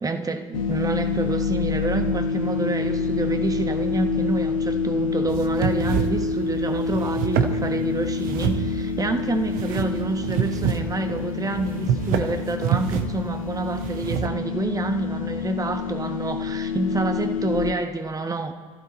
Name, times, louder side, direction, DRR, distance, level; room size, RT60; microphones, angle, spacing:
voice 1, 0.0-18.5, right 2 dB, 20° right, 7 dB, 1.4 m, -28 dB
sound 1, 0.5-17.7, left 5 dB, 75° left, 0.8 m, -27 dB
sound 2, 5.3-14.3, right 8 dB, 55° right, 1.2 m, -28 dB
25.5 x 15.0 x 3.1 m, 1.5 s
figure-of-eight pair, 60°, 17 cm